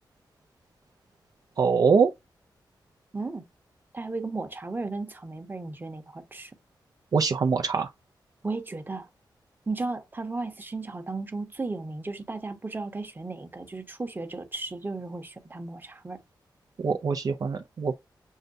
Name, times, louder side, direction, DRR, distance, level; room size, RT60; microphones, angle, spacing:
voice 1, 1.6-2.1 7.1-7.9 16.8-17.9, right 5 dB, 55° right, 0.4 m, -23 dB
voice 2, 3.1-3.4 3.9-6.5 8.4-9.1 9.7-16.2, right 3 dB, 25° right, 0.9 m, -35 dB
6.4 x 2.2 x 2.5 m
cardioid pair, 80°, 8 cm